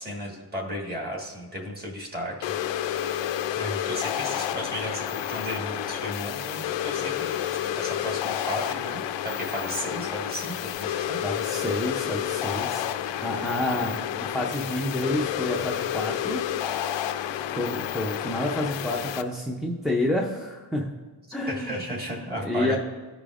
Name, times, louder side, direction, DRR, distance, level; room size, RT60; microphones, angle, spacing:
voice 1, 0.0-2.3 2.6-11.2 13.7-14.3 21.5-22.8, equal, 20° right, -2 dB, 1.6 m, -35 dB
sound 1, 2.4-19.2, left 10 dB, 80° left, 0.5 m, -30 dB
voice 2, 11.2-16.4 17.6-20.9 21.3-21.8 22.3-22.8, left 1 dB, ahead, -2 dB, 0.5 m, -29 dB
15.0 x 5.1 x 2.4 m, 1.3 s
wide cardioid pair, 160°, 44 cm